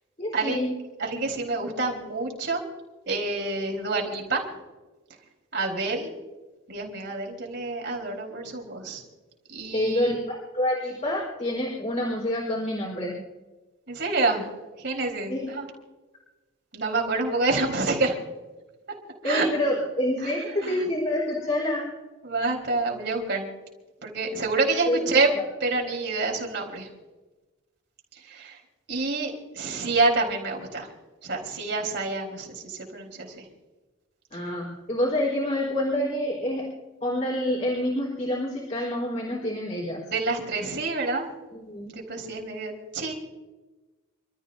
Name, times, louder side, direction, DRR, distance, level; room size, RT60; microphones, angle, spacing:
voice 1, 0.2-0.7 9.7-13.2 15.3-15.5 19.2-21.9 24.9-25.2 34.3-36.7 37.0-40.0 41.5-41.9, left 1 dB, 35° left, -4 dB, 4.3 m, -27 dB
voice 2, 1.0-2.6 3.1-4.4 5.5-6.2 6.7-9.0 9.5-10.2 13.9-14.5 14.8-15.7 16.7-18.2 19.2-19.5 20.2-20.9 21.4-21.5 22.2-23.5 24.0-25.3 25.6-26.9 28.1-28.6 28.9-30.9 31.2-33.5 40.1-41.3 41.9-43.1, right 3 dB, 60° right, 0 dB, 4.3 m, -28 dB
29.0 x 14.0 x 2.7 m, 1.2 s
head